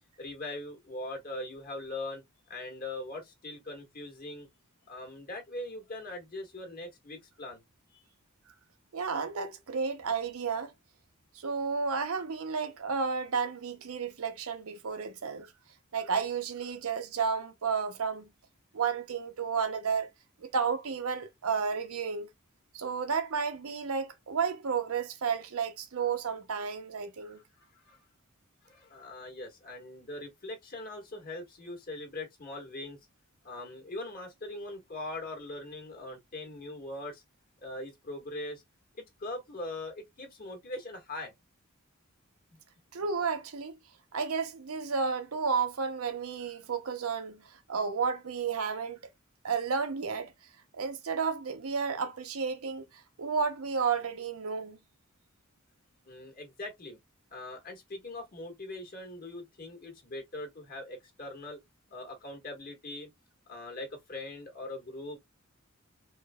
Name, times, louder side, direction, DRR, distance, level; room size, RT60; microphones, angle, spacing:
voice 1, 0.2-4.5 4.9-7.6 7.9-8.0 27.7-28.0 28.6-33.0 33.4-37.2 37.6-38.6 38.9-41.3 42.5-42.6 56.1-57.0 57.3-61.6 61.9-63.1 63.5-65.2, left 2 dB, 40° left, 1.4 m, -41 dB
voice 2, 8.9-10.7 11.3-15.5 15.9-18.3 18.7-20.1 20.4-22.3 22.7-27.4 42.9-43.7 44.1-49.0 49.4-50.3 50.7-54.8, right 5 dB, 80° right, 0.7 m, -32 dB
4.2 x 2.6 x 2.2 m
head